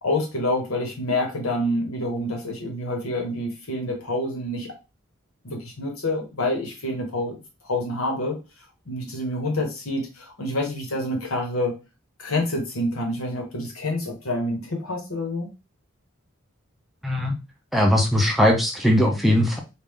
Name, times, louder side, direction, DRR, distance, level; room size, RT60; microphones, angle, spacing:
voice 1, 0.0-4.7 5.4-8.4 8.9-11.7 12.2-15.5, left 1 dB, 85° left, 2 dB, 1.3 m, -27 dB
voice 2, 17.0-17.3 17.7-19.6, equal, ahead, 0 dB, 0.6 m, -19 dB
3.3 x 2.5 x 3.6 m, 0.28 s
head